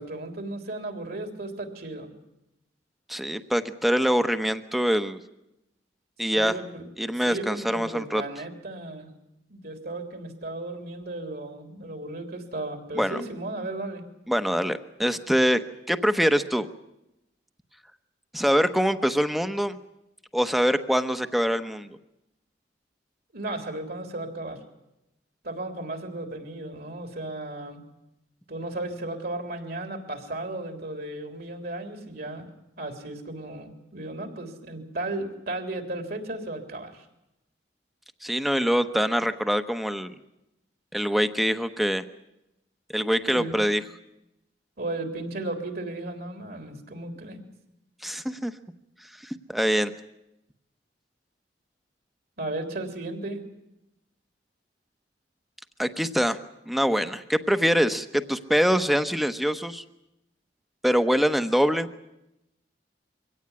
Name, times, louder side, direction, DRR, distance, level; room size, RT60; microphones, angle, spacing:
voice 1, 0.0-2.1 6.3-6.9 7.2-9.1 9.5-14.0 23.3-24.6 25.4-27.8 28.5-32.5 32.8-37.0 43.2-43.7 44.8-47.4 52.4-53.4, right 2 dB, 60° right, 5 dB, 3.7 m, -35 dB
voice 2, 3.1-5.2 6.2-6.6 7.0-8.2 13.0-13.2 14.3-15.6 15.9-16.7 18.3-19.8 20.3-21.9 38.2-40.2 40.9-42.0 42.9-43.8 48.0-48.5 49.2-49.9 55.8-56.4 56.7-59.8 60.8-61.9, equal, ahead, 10 dB, 1.0 m, -24 dB
24.0 x 17.0 x 9.8 m, 0.89 s
head